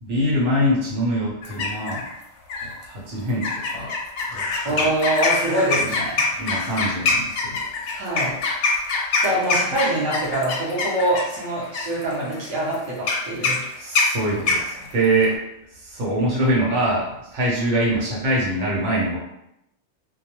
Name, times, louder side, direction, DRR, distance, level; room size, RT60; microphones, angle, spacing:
voice 1, 0.0-2.0 2.6-3.9 4.3-4.9 6.4-7.9 13.8-15.4 15.7-19.2, right 1 dB, 70° right, -3 dB, 1.0 m, -24 dB
sound 1, 1.4-2.1 2.5-2.8 3.4-15.3, left 4 dB, 70° left, 0.8 m, -24 dB
voice 2, 4.6-6.2 7.9-8.3 9.2-13.6, right 1 dB, 30° right, -6 dB, 0.6 m, -24 dB
2.2 x 2.2 x 2.9 m, 0.81 s
omnidirectional pair, 1.3 m